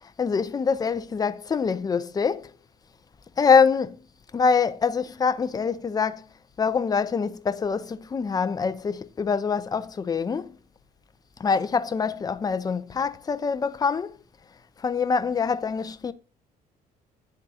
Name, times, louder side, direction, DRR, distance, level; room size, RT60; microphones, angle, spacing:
voice 1, 0.0-2.5 3.4-4.0 4.3-6.3 6.6-10.6 11.4-14.1 14.8-16.1, left 5 dB, 25° left, 0.4 m, -24 dB
9.9 x 3.6 x 2.7 m
cardioid pair, 110°, 17 cm